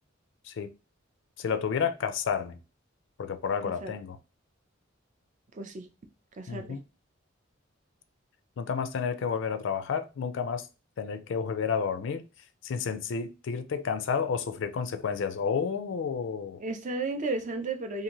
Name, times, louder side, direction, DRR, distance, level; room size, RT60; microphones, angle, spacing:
voice 1, 1.4-2.6 3.2-4.2 6.5-6.8 8.6-10.7 11.0-12.2 12.6-16.6, left 6 dB, 65° left, 0.4 m, -31 dB
voice 2, 5.6-5.9 6.4-6.8 16.6-18.0, right 3 dB, 40° right, 0.4 m, -33 dB
2.7 x 2.5 x 2.9 m
head